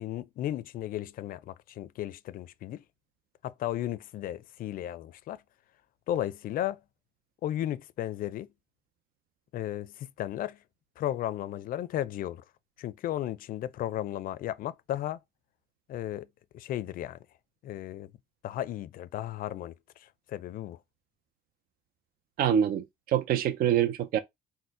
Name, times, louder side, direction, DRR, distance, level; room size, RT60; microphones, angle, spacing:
voice 1, 0.0-2.8 3.4-5.4 6.1-6.8 7.4-8.5 9.5-10.6 11.0-12.4 12.8-15.2 15.9-16.3 16.5-17.2 17.6-18.1 18.4-19.7 20.0-20.8, left 12 dB, 55° left, 0.4 m, -34 dB
voice 2, 22.4-24.2, right 9 dB, 60° right, 0.5 m, -25 dB
4.2 x 2.1 x 4.5 m
cardioid pair, 110°, 17 cm